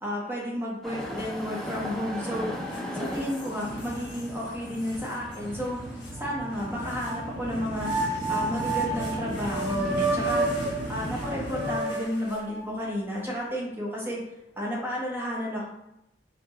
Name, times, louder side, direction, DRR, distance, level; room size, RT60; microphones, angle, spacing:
voice 1, 0.0-2.5 2.9-5.8 6.1-7.9 8.3-10.5 10.9-14.2 14.6-15.7, equal, 15° right, -4 dB, 0.9 m, -32 dB
sound 1, 0.8-10.4 11.0-11.1 11.9-12.0, equal, ahead, 0.5 m, -39 dB
sound 2, 2.7-2.8 3.3-4.2 4.9-5.0 6.0-7.2 7.8-12.7, right 2 dB, 85° left, 1.2 m, -31 dB
sound 3, 3.6-11.8, right 1 dB, 75° right, 1.3 m, -37 dB
4.5 x 2.3 x 2.9 m, 0.84 s
head